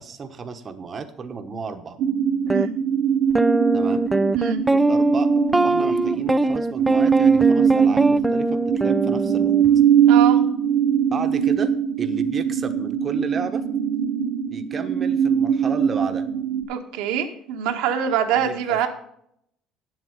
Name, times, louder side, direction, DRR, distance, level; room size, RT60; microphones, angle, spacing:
voice 1, 0.0-2.0 3.7-4.1 4.7-9.5 11.1-13.6 14.5-16.3 18.3-18.9, right 5 dB, 35° right, 7 dB, 1.1 m, -33 dB
sound 1, 2.0-16.6, right 8 dB, 65° right, 1.2 m, -21 dB
sound 2, 2.5-2.7 3.3-9.7, right 2 dB, 10° right, 0.3 m, -21 dB
voice 2, 10.1-10.4 16.7-18.9, right 9 dB, 85° right, 5 dB, 1.5 m, -24 dB
9.6 x 7.9 x 5.4 m, 0.70 s
supercardioid pair, 100°, 0 cm